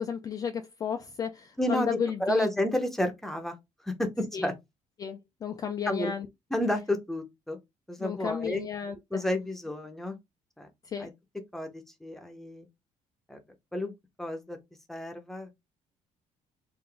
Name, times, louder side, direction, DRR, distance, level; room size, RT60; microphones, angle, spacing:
voice 1, 0.0-2.5 4.3-4.5 5.0-6.3 8.0-9.3 10.8-11.1, left 7 dB, 30° left, 0.3 m, -33 dB
voice 2, 1.6-3.5 3.8-4.5 5.9-6.1 6.5-7.6 7.9-8.7 9.1-10.2 10.6-10.7 11.0-11.1 11.5-12.7 13.3-13.4 13.7-13.9 14.2-14.6 14.9-15.7, left 1 dB, 5° left, 0.7 m, -31 dB
3.9 x 2.5 x 3.3 m
cardioid pair, 175°, 13 cm